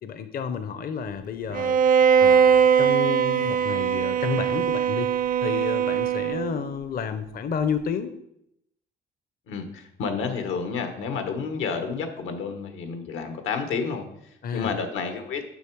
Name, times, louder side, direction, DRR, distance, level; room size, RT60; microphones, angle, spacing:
voice 1, 0.0-1.8 2.2-5.1 5.4-8.2 14.4-14.7, left 6 dB, 50° left, 10 dB, 0.6 m, -31 dB
Bowed string instrument, 1.5-6.6, right 7 dB, 45° right, 0.4 m, -21 dB
voice 2, 9.5-15.5, left 5 dB, 90° left, 7 dB, 1.1 m, -30 dB
7.0 x 5.9 x 4.5 m, 0.79 s
cardioid pair, 90°, 20 cm